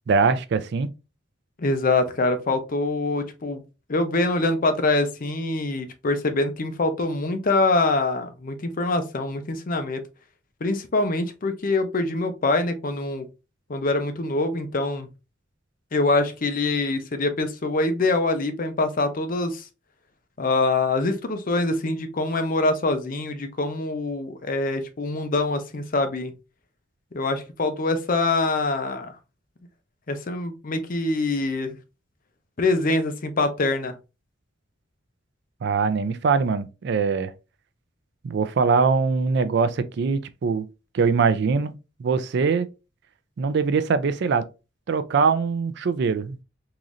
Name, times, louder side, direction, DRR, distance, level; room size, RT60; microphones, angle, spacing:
voice 1, 0.1-0.9 35.6-37.3 38.2-40.7 40.9-41.7 42.0-42.7 43.4-44.4 44.9-46.4, right 5 dB, 60° right, 0.4 m, -22 dB
voice 2, 1.6-3.6 3.9-10.0 10.6-13.3 13.7-15.1 15.9-19.7 20.4-26.3 27.1-29.2 30.1-31.8 32.6-34.0, left 2 dB, 45° left, 0.6 m, -24 dB
3.8 x 3.0 x 2.5 m
head